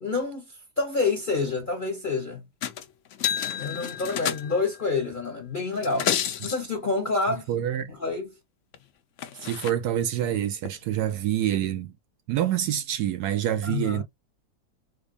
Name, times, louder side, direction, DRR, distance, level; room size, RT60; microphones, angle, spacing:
voice 1, 0.0-0.4 0.8-2.4 3.6-6.1 6.4-7.4 7.9-8.3 13.6-14.0, left 3 dB, 35° left, 0.9 m, -28 dB
sound 1, 2.6-2.8 3.1-4.8 5.7-6.6 8.7-8.8 9.2-9.7 10.6-10.7, left 9 dB, 80° left, 0.6 m, -30 dB
voice 2, 7.3-7.9 9.4-12.0 12.3-14.0, right 11 dB, 70° right, 1.0 m, -27 dB
4.5 x 2.6 x 2.4 m
omnidirectional pair, 2.0 m